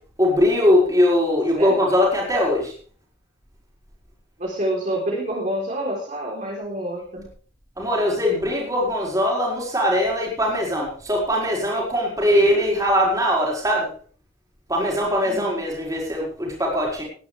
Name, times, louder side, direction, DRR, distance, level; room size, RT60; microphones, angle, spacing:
voice 1, 0.2-2.7 7.8-13.9 14.7-17.0, left 1 dB, 15° right, -2 dB, 4.9 m, -21 dB
voice 2, 4.4-7.2 12.3-12.5 15.2-15.6, right 1 dB, 40° right, -3 dB, 3.9 m, -28 dB
18.5 x 11.5 x 3.5 m, 0.42 s
head